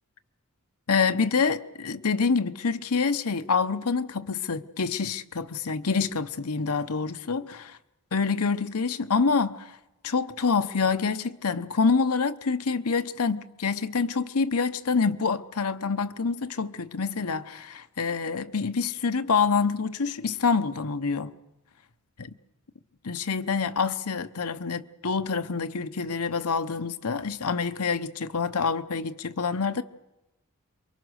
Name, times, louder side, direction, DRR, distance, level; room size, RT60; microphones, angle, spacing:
voice 1, 0.9-7.8 8.1-9.7 10.0-21.3 22.2-22.3 23.0-29.8, left 5 dB, 80° left, 0.9 m, -26 dB
28.0 x 23.0 x 6.4 m
head